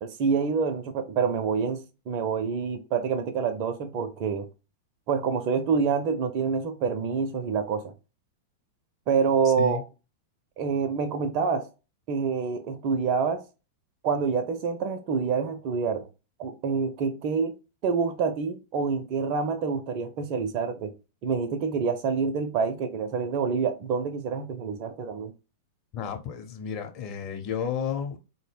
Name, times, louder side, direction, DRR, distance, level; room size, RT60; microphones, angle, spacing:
voice 1, 0.0-4.5 5.1-7.9 9.1-9.8 10.6-11.7 12.1-13.4 14.0-16.1 16.4-17.5 17.8-20.9 21.2-25.3, right 5 dB, 45° right, 0.5 m, -27 dB
voice 2, 9.4-9.8 25.9-28.2, left 7 dB, 40° left, 0.8 m, -32 dB
3.9 x 2.1 x 3.3 m
figure-of-eight pair, 95°, 0 cm